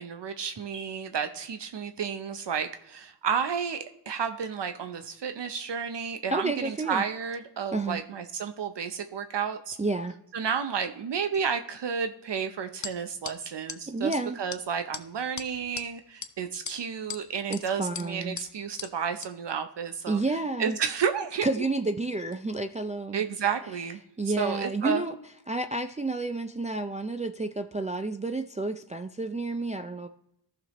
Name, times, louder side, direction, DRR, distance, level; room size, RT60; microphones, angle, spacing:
voice 1, 0.0-9.8 10.3-20.2 20.6-21.6 23.1-24.0 24.3-25.0, right 7 dB, 70° right, 8 dB, 0.6 m, -31 dB
voice 2, 6.3-7.0 7.7-8.0 9.8-10.1 13.9-14.4 17.5-18.4 20.1-20.8 21.4-23.2 24.2-25.2 25.5-30.1, right 2 dB, 20° right, 6 dB, 0.3 m, -30 dB
sound 1, 12.8-12.9 13.2-13.3 13.7-13.8 14.1-14.2 14.5-14.6 14.9-15.0 15.4-15.8 16.2-16.3 16.7-17.2 17.5-17.6 17.9-18.0 18.4-18.5 18.8-18.9 19.2-19.3, left 6 dB, 40° left, 0.6 m, -37 dB
14.5 x 6.0 x 3.0 m, 0.81 s
wide cardioid pair, 110°, 43 cm